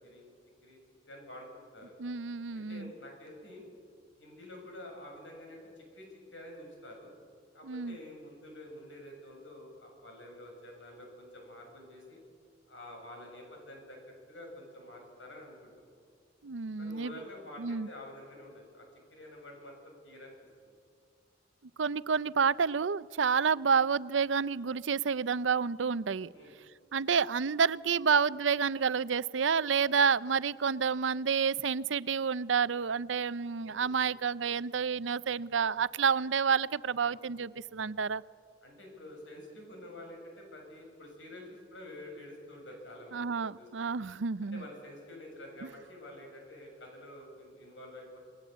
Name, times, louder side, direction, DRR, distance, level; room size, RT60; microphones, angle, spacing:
voice 1, 1.1-1.9 2.5-3.6 4.2-7.1 7.5-12.2 12.7-15.9 16.8-18.9 19.1-20.3 20.6-20.7 26.3-26.5 33.6-33.9 37.0-37.2 38.6-43.7 44.5-48.2, left 1 dB, 85° left, 1 dB, 7.4 m, -48 dB
voice 2, 2.0-2.9 7.6-8.0 16.4-17.2 17.6-17.9 21.8-26.3 26.9-38.2 43.1-44.6, right 6 dB, 80° right, 17 dB, 0.6 m, -29 dB
28.0 x 20.0 x 8.2 m, 2.1 s
head